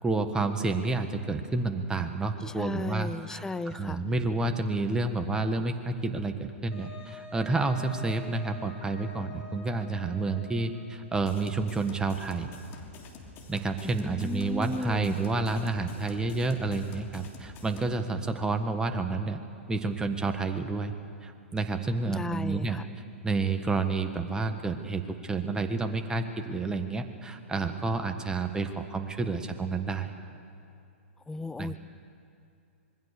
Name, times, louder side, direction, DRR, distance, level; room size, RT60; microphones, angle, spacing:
voice 1, 0.0-12.5 13.5-19.4 19.7-20.9 21.2-22.8 23.2-30.1 31.6-31.8, right 3 dB, 10° right, 6 dB, 1.5 m, -30 dB
voice 2, 2.6-4.0 13.8-15.2 22.1-22.9 31.3-31.8, left 3 dB, 10° left, 14 dB, 0.6 m, -35 dB
Wind instrument woodwind instrument, 6.7-11.1, left 3 dB, 65° left, 5.0 m, -46 dB
sound 1, 11.2-17.9, left 3 dB, 35° left, 3.3 m, -48 dB
26.0 x 21.0 x 6.8 m, 2.6 s
hypercardioid pair, 120°, 7 cm